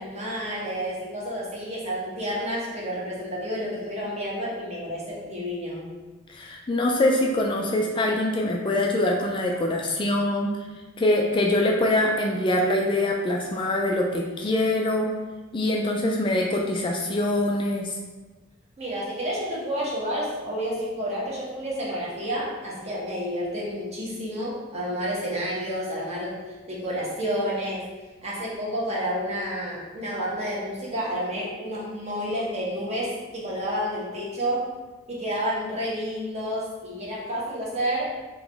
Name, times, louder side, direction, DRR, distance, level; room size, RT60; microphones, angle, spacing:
voice 1, 0.0-5.8 18.8-26.4 26.7-27.9 28.2-34.7 35.1-38.0, equal, 35° right, -6 dB, 1.1 m, -30 dB
voice 2, 6.3-10.5 11.0-15.1 15.5-18.0, left 1 dB, 25° left, 0 dB, 0.3 m, -24 dB
3.7 x 3.0 x 3.4 m, 1.2 s
head